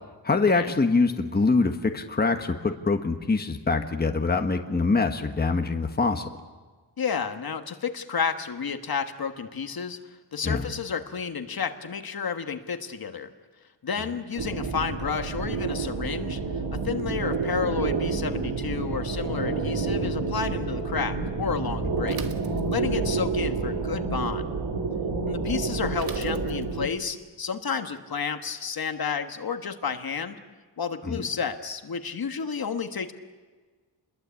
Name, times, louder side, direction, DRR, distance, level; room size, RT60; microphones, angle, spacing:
voice 1, 0.2-6.3 10.4-10.7 31.1-31.2, left 3 dB, 20° left, 5 dB, 1.3 m, -24 dB
voice 2, 7.0-10.0 10.3-13.3 13.8-16.4 16.7-22.2 22.7-24.5 25.2-30.4 30.8-33.1, left 6 dB, 55° left, 7 dB, 1.5 m, -31 dB
sound 1, 14.4-26.9, right 4 dB, 85° right, 2.6 m, -29 dB
Bicycle / Mechanisms, 22.1-23.1 26.0-26.9, right 5 dB, 55° right, 1.7 m, -43 dB
29.0 x 21.5 x 8.4 m, 1.4 s
wide cardioid pair, 180°, 42 cm